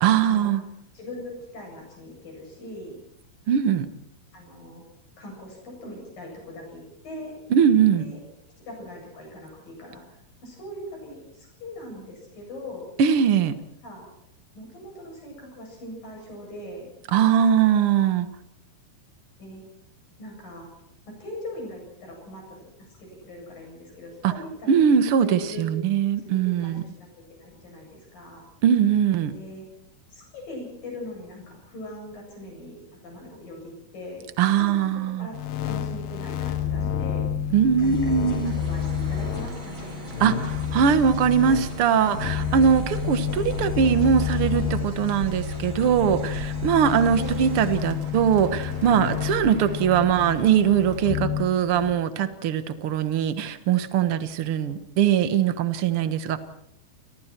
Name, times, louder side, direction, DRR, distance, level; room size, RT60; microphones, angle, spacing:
voice 1, 0.0-0.6 3.5-3.9 7.5-8.0 13.0-13.5 17.1-18.3 24.2-24.3 24.7-26.8 28.6-29.3 34.4-35.3 37.5-38.5 40.2-56.4, right 8 dB, 70° right, 11 dB, 1.3 m, -21 dB
voice 2, 0.9-3.0 4.3-4.8 5.2-7.4 8.0-8.2 8.6-12.9 13.8-14.1 14.5-16.9 19.4-19.6 20.2-20.7 21.2-22.6 23.0-24.8 25.2-25.7 26.2-28.4 29.3-29.7 30.1-32.8 33.0-34.3 34.6-35.3 35.6-37.2 37.8-40.0 47.2-47.4, left 1 dB, 60° left, 0 dB, 9.8 m, -40 dB
sound 1, 35.3-51.9, left 8 dB, 85° left, 3.4 m, -30 dB
sound 2, 37.8-47.8, left 1 dB, 15° left, 7.0 m, -48 dB
Bird, 38.2-51.3, right 4 dB, 40° right, 2.1 m, -39 dB
29.5 x 23.5 x 4.5 m, 0.75 s
omnidirectional pair, 4.5 m